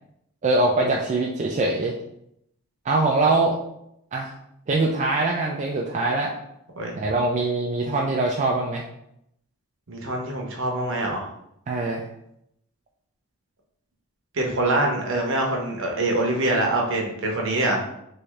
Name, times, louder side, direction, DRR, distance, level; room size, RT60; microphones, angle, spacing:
voice 1, 0.4-1.9 2.9-3.6 4.1-4.3 4.7-6.3 7.0-8.8 11.7-12.1, right 2 dB, 30° right, -2 dB, 0.3 m, -23 dB
voice 2, 6.8-7.1 9.9-11.2 14.3-17.8, right 2 dB, 60° right, 0 dB, 0.8 m, -24 dB
3.2 x 2.6 x 3.4 m, 0.77 s
head